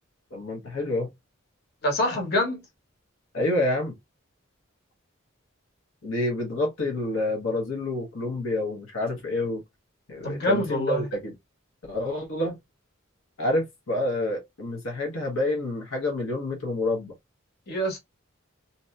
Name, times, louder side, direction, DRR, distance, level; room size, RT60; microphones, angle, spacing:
voice 1, 0.3-1.1 3.3-3.9 6.0-9.6 10.1-11.3 11.9-12.6 13.4-17.1, left 2 dB, 85° left, 1.0 m, -28 dB
voice 2, 1.8-2.6 10.2-11.0 17.7-18.0, equal, 50° left, 1.2 m, -25 dB
2.8 x 2.7 x 2.2 m
head